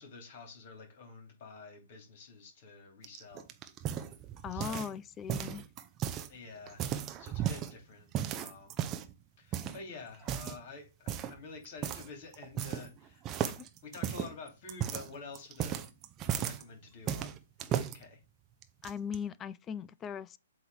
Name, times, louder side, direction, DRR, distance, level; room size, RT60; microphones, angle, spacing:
voice 1, 0.0-3.5 4.5-4.8 6.3-8.7 9.4-13.4 13.8-15.9 16.2-18.2, left 4 dB, 45° left, 2.9 m, -49 dB
sound 1, 3.0-5.0 5.3-6.3 6.7-7.7 8.1-9.1 9.5-9.8 10.2-10.6 11.1-11.4 11.8-12.1 12.3-13.0 13.3-16.6 17.1-18.0 18.6-19.2, right 10 dB, 25° right, 0.7 m, -35 dB
voice 2, 4.4-5.7 13.5-13.7 18.8-20.4, left 7 dB, 20° left, 0.3 m, -39 dB
7.9 x 3.1 x 4.8 m
figure-of-eight pair, 125°, 0 cm